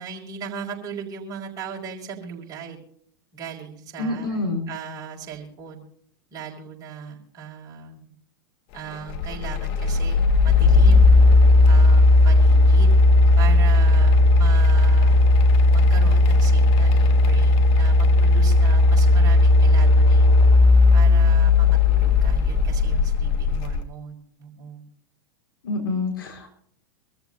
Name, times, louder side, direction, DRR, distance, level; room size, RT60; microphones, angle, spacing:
voice 1, 0.0-2.8 3.3-4.4 4.7-5.8 6.3-8.0 8.7-13.0 13.4-15.2 15.7-20.4 20.9-24.8, right 7 dB, 30° right, -2 dB, 5.6 m, -38 dB
voice 2, 4.0-4.7 25.6-26.6, left 2 dB, 75° left, 2 dB, 4.7 m, -27 dB
sound 1, 9.1-23.8, left 2 dB, 45° left, 1.4 m, -16 dB
25.0 x 14.0 x 2.7 m, 0.64 s
hypercardioid pair, 100°, 12 cm